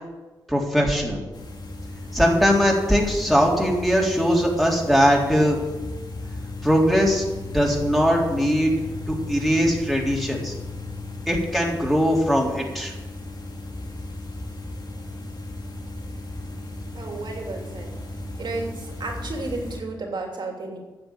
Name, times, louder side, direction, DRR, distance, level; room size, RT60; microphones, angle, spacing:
voice 1, 0.5-1.2 2.1-5.6 6.6-7.2 7.5-8.7 9.1-10.5 11.3-12.9, equal, ahead, -2 dB, 3.7 m, -20 dB
sound 1, 1.3-19.8, left 2 dB, 55° left, 2.6 m, -36 dB
voice 2, 16.9-17.9 18.4-20.8, right 3 dB, 60° right, 1 dB, 3.1 m, -32 dB
10.0 x 7.1 x 8.6 m, 1.2 s
cardioid pair, 55°, 9 cm